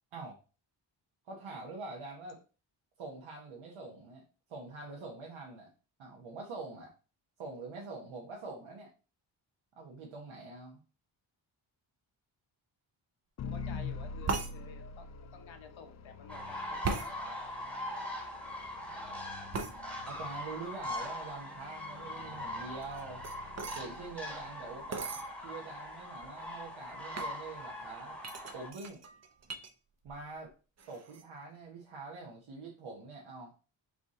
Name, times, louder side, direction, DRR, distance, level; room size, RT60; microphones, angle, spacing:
voice 1, 1.3-2.4 3.0-4.2 4.5-5.7 6.0-6.9 7.4-8.9 9.8-10.8 18.8-18.9 20.0-23.2 23.7-28.2 28.5-29.0 30.0-30.5 30.9-33.5, right 3 dB, 75° right, -2 dB, 1.1 m, -45 dB
voice 2, 13.4-17.4, left 6 dB, 70° left, 6 dB, 1.0 m, -52 dB
sound 1, 13.4-25.5, left 5 dB, 35° left, 0.4 m, -47 dB
sound 2, 14.3-14.5 16.8-17.1 19.5-19.8 22.8-23.8 24.9-25.3 26.0-26.1 26.2-26.6 27.1-27.4 28.2-29.7 30.0-30.5 30.8-31.2, right 4 dB, 35° right, 0.6 m, -37 dB
sound 3, 16.3-28.7, left 1 dB, 5° left, 1.1 m, -42 dB
4.8 x 2.7 x 3.7 m, 0.35 s
wide cardioid pair, 120°, 49 cm